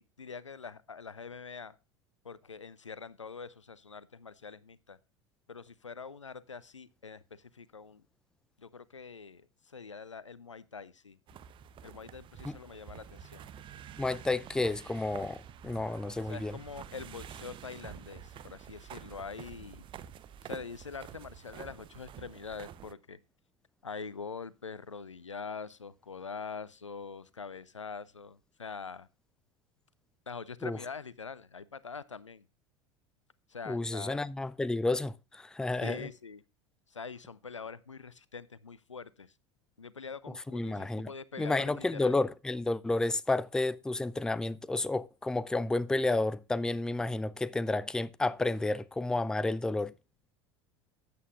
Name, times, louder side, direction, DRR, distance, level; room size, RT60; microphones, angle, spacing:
voice 1, 0.0-1.8 2.2-5.0 5.5-8.0 8.6-11.2 11.8-13.5 16.3-19.8 20.4-23.2 23.8-29.1 30.3-32.4 33.5-34.2 35.8-36.4 36.9-39.3 39.8-42.2, left 5 dB, 85° left, 0.6 m, -44 dB
sound 1, 11.3-22.9, right 9 dB, 35° right, 0.8 m, -48 dB
voice 2, 14.0-16.6 30.6-30.8 33.7-36.1 40.5-41.1 41.4-49.9, left 2 dB, 5° left, 0.4 m, -31 dB
13.5 x 8.5 x 2.4 m
figure-of-eight pair, 75°, 15 cm